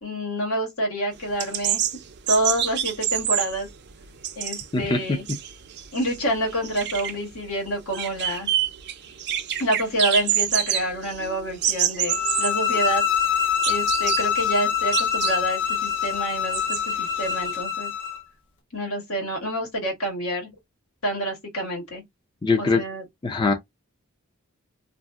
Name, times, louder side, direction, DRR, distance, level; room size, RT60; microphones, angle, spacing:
voice 1, 0.0-1.8 2.3-3.7 4.4-5.2 5.9-8.5 9.6-13.0 13.7-17.9 18.7-20.5 21.0-22.0 22.6-23.0, right 1 dB, 75° left, 1.4 m, -27 dB
sound 1, 1.2-17.5, right 10 dB, 50° right, 0.5 m, -28 dB
sound 2, 12.1-18.2, left 8 dB, 60° left, 0.8 m, -25 dB
voice 2, 22.4-22.8 23.2-23.5, left 3 dB, 20° left, 0.4 m, -21 dB
2.6 x 2.1 x 3.3 m
head